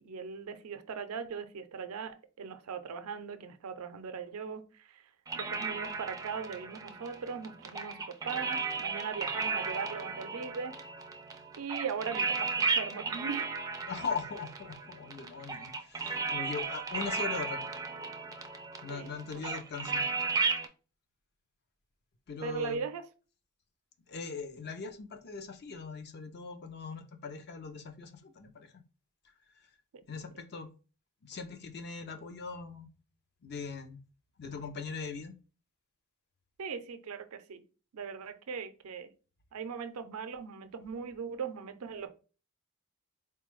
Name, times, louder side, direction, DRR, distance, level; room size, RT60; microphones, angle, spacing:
voice 1, 0.0-5.0 5.4-10.7 11.6-13.5 18.9-19.1 22.4-23.1 36.6-37.6 37.9-39.1 39.5-42.1, right 6 dB, 90° right, 0.5 m, -39 dB
sound 1, 5.3-20.7, right 4 dB, 15° right, 0.3 m, -35 dB
voice 2, 13.8-17.6 18.8-20.1 22.3-22.8 24.1-28.8 30.1-30.7 31.2-32.9 33.4-34.0 34.4-35.3, left 4 dB, 50° left, 0.5 m, -40 dB
4.2 x 2.2 x 3.0 m
head